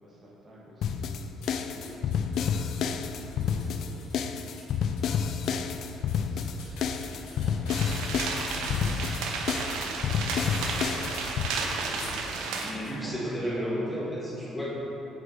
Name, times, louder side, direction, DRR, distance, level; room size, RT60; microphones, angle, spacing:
voice 1, 0.0-4.8 5.0-6.9 7.2-11.0 11.3-14.0 14.6-14.7, equal, 35° right, -5 dB, 1.6 m, -49 dB
sound 1, 0.8-11.5, left 7 dB, 65° left, 0.3 m, -30 dB
sound 2, 1.4-12.2 12.6-13.0, left 1 dB, 85° left, 1.1 m, -44 dB
sound 3, 7.7-12.7, right 4 dB, 90° right, 0.6 m, -33 dB
voice 2, 12.5-14.7, equal, 10° left, -6 dB, 1.5 m, -33 dB
7.7 x 4.9 x 4.1 m, 2.9 s
cardioid pair, 105°, 0 cm